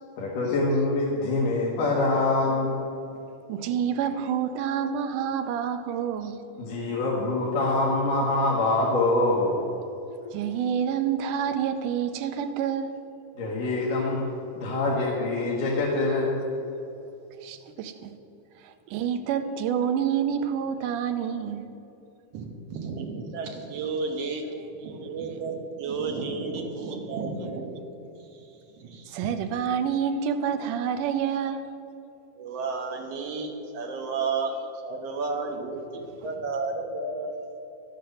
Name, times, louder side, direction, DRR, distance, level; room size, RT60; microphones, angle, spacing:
voice 1, 0.2-2.8 6.6-9.6 10.2-10.3 13.4-14.2 14.6-16.4, left 2 dB, 85° left, -4 dB, 2.9 m, -25 dB
voice 2, 3.5-6.4 10.3-13.0 17.4-18.1 18.6-21.6 29.1-31.7, right 8 dB, 80° right, 8 dB, 2.2 m, -28 dB
voice 3, 22.3-24.4 24.7-29.2 32.4-34.6 34.8-37.3, right 4 dB, 60° right, 2 dB, 1.9 m, -32 dB
12.0 x 7.7 x 6.6 m, 2.9 s
omnidirectional pair, 3.7 m